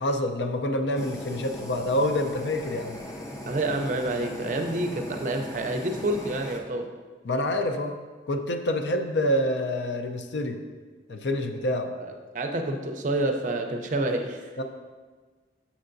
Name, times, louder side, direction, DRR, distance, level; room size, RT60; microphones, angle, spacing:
voice 1, 0.0-3.0 7.2-8.0 8.3-10.6 11.1-11.9 14.6-14.7, left 1 dB, 85° left, 6 dB, 0.5 m, -27 dB
Fire, 1.0-6.6, left 1 dB, 15° left, 0.5 m, -39 dB
voice 2, 3.5-6.9 11.9-14.6, right 2 dB, 45° right, 4 dB, 0.5 m, -28 dB
7.1 x 5.5 x 2.6 m, 1.4 s
head